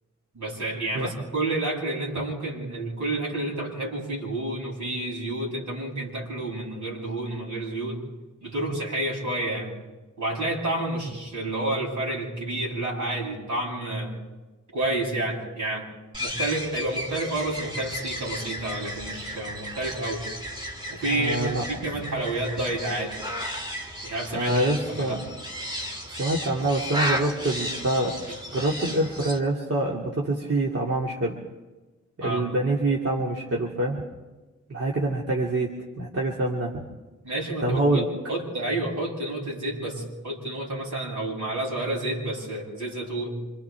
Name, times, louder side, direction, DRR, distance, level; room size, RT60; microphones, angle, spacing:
voice 1, 0.3-8.0 8.4-9.7 10.2-14.1 14.7-15.8 16.2-20.2 20.9-23.1 24.0-25.2 32.2-32.4 37.2-43.4, right 2 dB, 75° right, -3 dB, 7.9 m, -30 dB
sound 1, 16.1-29.4, equal, 15° right, 2.1 m, -34 dB
voice 2, 21.0-21.6 24.3-25.2 26.1-31.4 32.2-34.0 34.7-36.8 37.6-38.0, right 2 dB, 50° right, -3 dB, 2.6 m, -26 dB
27.5 x 27.0 x 3.5 m, 1.2 s
wide cardioid pair, 145°, 30 cm